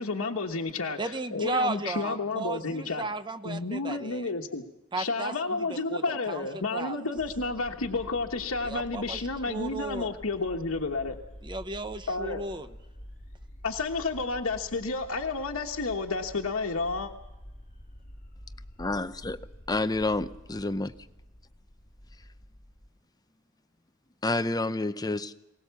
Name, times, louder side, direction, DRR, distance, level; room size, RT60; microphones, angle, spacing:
voice 1, 0.0-3.0 3.4-4.6 4.9-11.2 12.1-12.4 13.6-17.1, left 3 dB, 90° left, 1 dB, 1.2 m, -31 dB
voice 2, 1.0-4.3 4.9-5.6 5.9-6.5 6.7-7.0 8.6-9.2 9.5-10.1 11.4-12.7, right 2 dB, 20° right, 10 dB, 1.0 m, -34 dB
sound 1, 7.1-22.9, equal, 40° left, 4.1 m, -48 dB
voice 3, 18.8-19.4 19.7-20.9 24.2-25.3, left 2 dB, 20° left, 11 dB, 0.7 m, -29 dB
21.0 x 18.5 x 7.0 m, 0.98 s
head